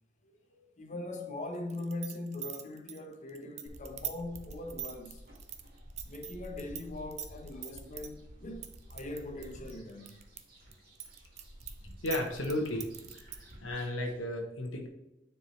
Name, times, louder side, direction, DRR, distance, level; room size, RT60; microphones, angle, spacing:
voice 1, 0.8-5.2 6.0-10.2, left 2 dB, 40° left, 1.0 m, -41 dB
sound 1, 1.7-6.8 7.1-8.1 8.6-10.4 10.7-13.5, right 11 dB, 35° right, 0.6 m, -41 dB
sound 2, 3.7-14.2, equal, 50° right, 2.4 m, -51 dB
voice 2, 12.0-12.9 13.1-14.9, left 1 dB, 90° left, 1.0 m, -34 dB
9.5 x 4.7 x 3.2 m
head